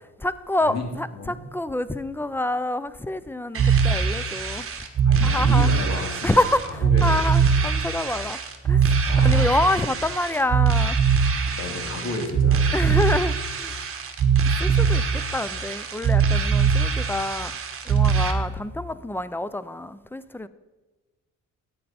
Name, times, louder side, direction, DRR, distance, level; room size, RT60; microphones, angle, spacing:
voice 1, 0.2-4.7 5.2-5.7 6.2-8.4 8.6-11.0 12.7-13.7 14.6-17.5 17.9-20.5, left 1 dB, 5° left, 15 dB, 0.5 m, -27 dB
voice 2, 1.1-1.4 5.0-7.0 9.0-9.6 11.5-12.6, left 2 dB, 60° left, 2 dB, 2.6 m, -32 dB
sound 1, 3.5-18.3, right 6 dB, 45° right, 1.5 m, -22 dB
13.0 x 9.2 x 4.3 m, 1.2 s
cardioid pair, 90°, 30 cm